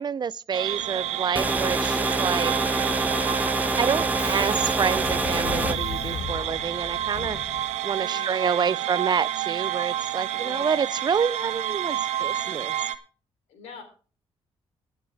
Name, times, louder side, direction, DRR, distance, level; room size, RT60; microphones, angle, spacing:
voice 1, 0.0-2.5 3.8-7.4 7.8-12.7, right 6 dB, 40° right, 0.4 m, -28 dB
sound 1, 0.5-13.0, right 12 dB, 80° right, 0.7 m, -29 dB
Subway metro underground, 0.6-8.1, left 6 dB, 70° left, 1.3 m, -39 dB
sound 2, 1.4-5.7, right 2 dB, 15° right, 1.0 m, -26 dB
voice 2, 8.1-8.8 10.3-11.0 13.5-13.8, left 6 dB, 85° left, 3.4 m, -44 dB
21.5 x 7.2 x 3.4 m
cardioid pair, 70°, 11 cm